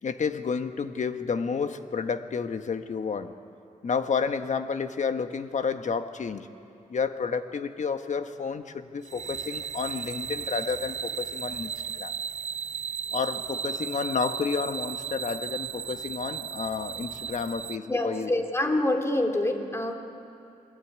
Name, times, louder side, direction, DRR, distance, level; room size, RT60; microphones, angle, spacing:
voice 1, 0.0-3.3 3.8-6.5 6.9-12.1 13.1-18.5, left 5 dB, 60° left, 8 dB, 1.4 m, -30 dB
sound 1, 9.1-17.8, right 7 dB, 55° right, 0.7 m, -35 dB
voice 2, 17.9-19.9, left 1 dB, 20° left, 4 dB, 3.0 m, -26 dB
28.5 x 21.0 x 9.6 m, 2.8 s
cardioid pair, 75°, 14 cm